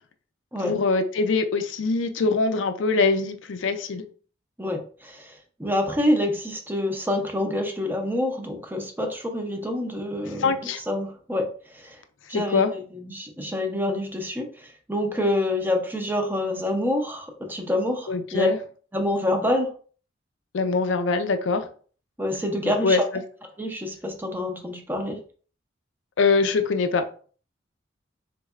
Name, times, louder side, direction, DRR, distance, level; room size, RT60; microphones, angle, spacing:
voice 1, 0.6-4.0 10.4-10.8 12.3-12.7 18.1-18.6 20.5-21.7 22.8-23.0 26.2-27.0, left 4 dB, 70° left, 8 dB, 0.4 m, -23 dB
voice 2, 4.6-5.3 5.6-12.0 12.3-18.5 18.9-19.7 22.2-23.0 23.6-25.2, left 1 dB, 10° right, 4 dB, 0.6 m, -27 dB
3.7 x 3.1 x 2.3 m, 0.42 s
head